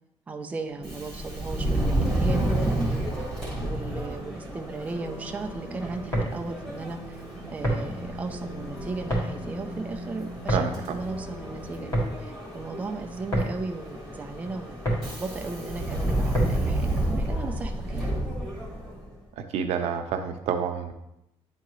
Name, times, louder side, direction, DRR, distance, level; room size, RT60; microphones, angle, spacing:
voice 1, 0.3-3.0 3.6-7.2 7.5-11.9 12.2-14.8 15.0-18.1, right 3 dB, 15° right, 3 dB, 0.4 m, -36 dB
Subway metro underground, 0.7-19.1, right 1 dB, 5° left, 1.5 m, -31 dB
sound 1, 5.0-12.0, equal, 70° left, 1.6 m, -41 dB
sound 2, 6.0-16.8, right 1 dB, 30° left, 1.8 m, -31 dB
voice 2, 10.5-11.0 19.4-20.9, right 7 dB, 85° right, 6 dB, 0.7 m, -29 dB
9.5 x 3.7 x 3.0 m, 0.84 s
cardioid pair, 175°, 11 cm